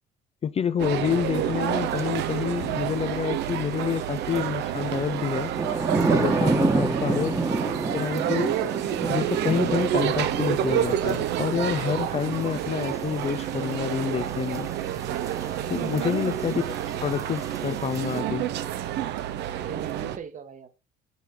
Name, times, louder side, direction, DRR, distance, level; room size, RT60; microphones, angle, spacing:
voice 1, 0.4-5.5 6.1-7.3 7.6-8.6 9.1-14.7 15.7-16.6 17.0-18.5, left 8 dB, 35° left, 0.5 m, -28 dB
sound 1, 0.8-20.2, right 11 dB, 65° right, 0.7 m, -29 dB
sound 2, 2.0-2.1 4.4-18.2, right 3 dB, 15° right, 1.3 m, -30 dB
voice 2, 15.6-16.1 19.6-20.7, right 7 dB, 40° right, 1.2 m, -38 dB
5.6 x 5.5 x 4.5 m
hypercardioid pair, 65°, 19 cm